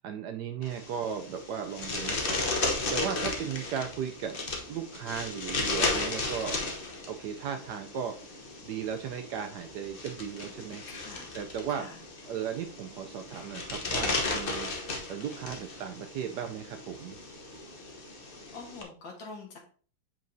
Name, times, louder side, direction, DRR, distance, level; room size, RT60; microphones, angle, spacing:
voice 1, 0.0-2.4 2.9-4.4 4.7-6.6 7.1-8.1 8.6-10.8 11.3-11.9 12.3-17.2, right 8 dB, 75° right, 6 dB, 0.9 m, -36 dB
sound 1, 0.6-18.8, left 3 dB, 45° left, 0.7 m, -35 dB
voice 2, 10.9-11.3 11.7-12.0 18.5-19.6, left 4 dB, 65° left, 1 dB, 2.2 m, -45 dB
7.6 x 5.5 x 2.7 m, 0.42 s
omnidirectional pair, 2.2 m